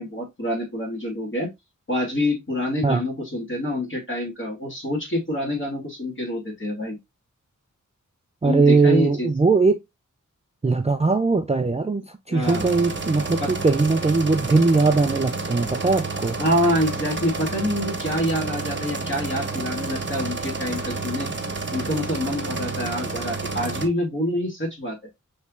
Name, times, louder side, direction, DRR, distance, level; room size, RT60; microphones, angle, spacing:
voice 1, 0.0-1.5 1.9-7.0 8.4-9.3 12.3-12.6 13.4-13.5 16.4-21.3 21.7-25.0, left 1 dB, 40° left, 2.4 m, -26 dB
voice 2, 8.4-9.8 10.6-16.4, right 3 dB, 20° right, 0.4 m, -20 dB
sound 1, 12.4-23.9, right 3 dB, 35° right, 0.8 m, -30 dB
5.3 x 3.2 x 2.4 m
wide cardioid pair, 90°, 31 cm